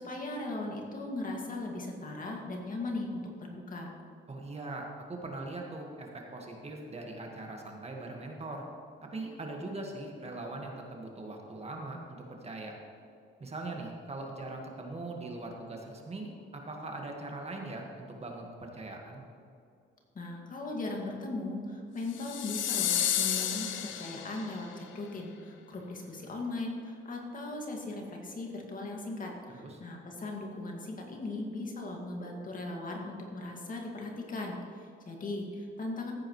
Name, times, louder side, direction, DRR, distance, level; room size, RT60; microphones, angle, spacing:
voice 1, 0.0-3.9 20.1-36.1, left 2 dB, 45° left, 0 dB, 2.2 m, -38 dB
voice 2, 4.3-8.7 9.0-12.7 13.4-19.2 29.5-29.8, right 2 dB, 30° right, 1 dB, 1.8 m, -41 dB
sound 1, 22.1-24.6, left 10 dB, 75° left, 0.8 m, -31 dB
15.0 x 8.5 x 3.2 m, 2.4 s
cardioid pair, 90°, 20 cm